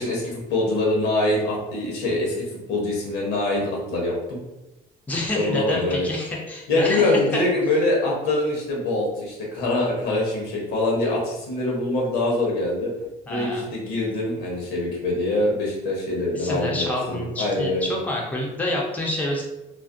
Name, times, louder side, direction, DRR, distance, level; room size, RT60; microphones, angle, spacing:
voice 1, 0.0-4.4 5.3-6.1 6.7-12.9 13.3-17.9, left 2 dB, 85° left, -2 dB, 0.9 m, -24 dB
voice 2, 5.1-7.4 13.3-13.7 16.3-19.4, left 1 dB, 10° left, -2 dB, 0.5 m, -28 dB
2.4 x 2.0 x 2.5 m, 0.97 s
cardioid pair, 110°, 17 cm